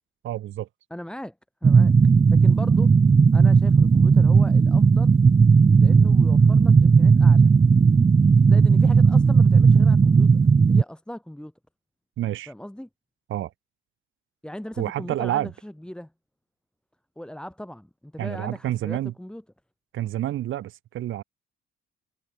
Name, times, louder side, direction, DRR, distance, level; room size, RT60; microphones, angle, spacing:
voice 1, 0.2-0.7 12.2-12.5 13.3-13.5 14.8-15.5 18.2-19.1 19.9-21.2, right 13 dB, 80° right, 4.0 m, -28 dB
voice 2, 0.9-1.3 1.6-1.9 2.3-2.9 3.3-5.2 5.8-7.5 8.5-10.4 10.7-11.5 12.5-12.9 14.4-16.1 17.2-19.4, left 1 dB, 5° left, 6.4 m, -38 dB
sound 1, 1.6-10.8, right 5 dB, 25° right, 0.7 m, -16 dB
cardioid pair, 90°, 20 cm